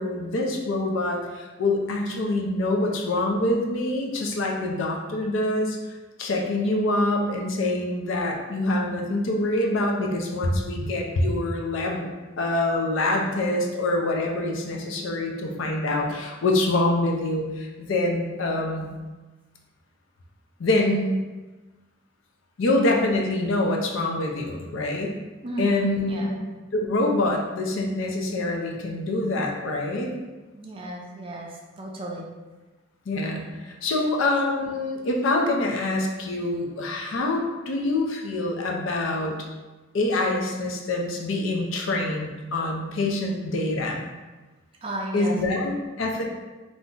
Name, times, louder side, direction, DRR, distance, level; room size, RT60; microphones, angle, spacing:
voice 1, 0.0-5.8 6.2-12.0 12.4-18.9 20.6-21.1 22.6-25.2 25.6-26.4 26.7-30.1 33.1-39.4 39.9-44.1 45.1-46.3, left 2 dB, 80° left, 0 dB, 0.5 m, -25 dB
voice 2, 25.4-26.3 30.5-32.3 44.8-45.4, right 1 dB, 25° right, -1 dB, 0.3 m, -34 dB
2.5 x 2.1 x 3.6 m, 1.2 s
head